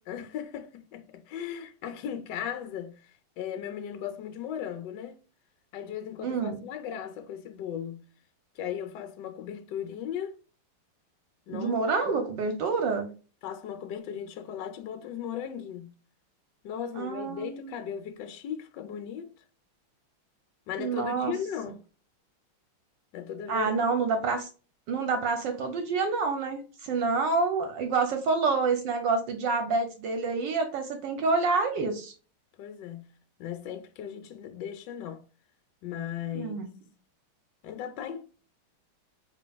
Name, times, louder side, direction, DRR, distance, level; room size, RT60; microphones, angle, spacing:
voice 1, 0.1-5.2 5.7-8.0 8.6-10.4 11.5-11.8 12.1-12.3 13.4-15.9 16.6-19.3 20.7-21.8 23.1-23.7 32.6-33.1 33.4-35.2 35.8-36.6 37.6-38.2, left 9 dB, 80° left, 1.0 m, -37 dB
voice 2, 6.2-6.6 11.5-13.1 17.0-17.7 20.8-21.3 23.5-24.5 24.9-32.1 36.3-36.7, right 4 dB, 70° right, 1.2 m, -28 dB
4.4 x 3.2 x 2.2 m
omnidirectional pair, 2.4 m